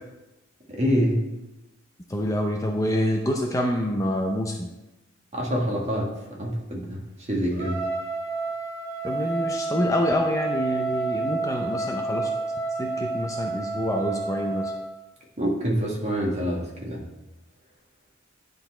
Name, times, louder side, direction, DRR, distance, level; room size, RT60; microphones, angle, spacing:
voice 1, 0.7-1.2 5.3-7.9 15.4-17.0, equal, 30° right, -2 dB, 1.6 m, -26 dB
voice 2, 2.1-4.7 9.0-12.3 12.8-14.7, equal, 15° left, 2 dB, 0.5 m, -27 dB
Trumpet, 7.5-14.9, right 3 dB, 50° right, 2.1 m, -29 dB
10.5 x 4.0 x 4.3 m, 1.0 s
head